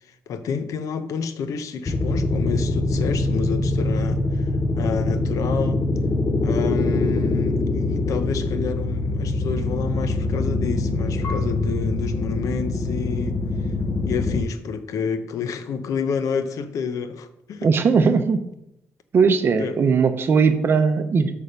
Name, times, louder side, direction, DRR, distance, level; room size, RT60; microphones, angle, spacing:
voice 1, 0.3-4.5 4.8-5.8 6.4-13.4 14.1-17.7 19.5-19.8, left 6 dB, 85° left, 0.7 m, -29 dB
sound 1, 1.9-14.4, left 2 dB, 20° left, 0.7 m, -24 dB
Marimba xylophone / Wood, 11.2-14.1, left 4 dB, 70° left, 1.6 m, -37 dB
voice 2, 17.6-18.4 19.1-21.3, right 5 dB, 45° right, 0.7 m, -19 dB
8.5 x 3.5 x 6.6 m
wide cardioid pair, 165°, 6 cm